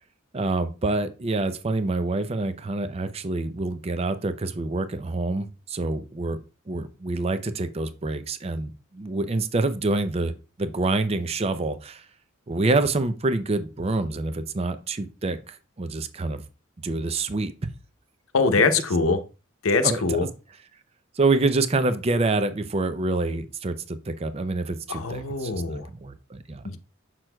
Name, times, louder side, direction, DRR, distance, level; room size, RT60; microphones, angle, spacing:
voice 1, 0.3-6.4 6.7-10.3 10.6-12.0 12.5-16.4 16.8-17.5 19.8-20.2 21.2-26.6, right 2 dB, 30° right, 11 dB, 0.5 m, -26 dB
voice 2, 18.3-19.2 19.6-20.3 24.9-25.9 26.6-26.8, left 4 dB, 90° left, 8 dB, 0.8 m, -23 dB
7.5 x 6.0 x 2.2 m, 0.32 s
head